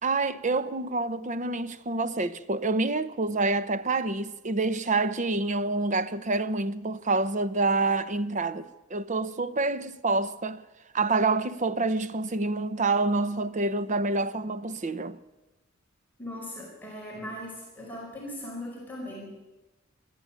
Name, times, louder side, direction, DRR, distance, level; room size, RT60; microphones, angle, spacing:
voice 1, 0.0-10.6 10.9-15.2, right 3 dB, 40° right, 0.8 m, -27 dB
voice 2, 16.2-19.4, left 1 dB, 10° left, 5.2 m, -39 dB
22.5 x 13.5 x 9.0 m
head